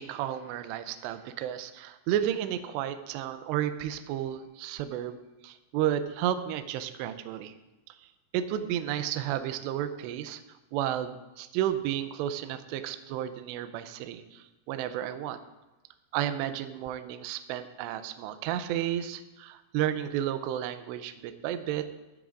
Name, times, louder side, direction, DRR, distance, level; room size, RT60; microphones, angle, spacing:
voice 1, 0.0-7.5 7.9-8.0 8.3-10.4 10.7-15.4 16.1-21.9, right 11 dB, 80° right, 10 dB, 2.6 m, -32 dB
15.0 x 13.0 x 2.5 m, 1.1 s
omnidirectional pair, 5.5 m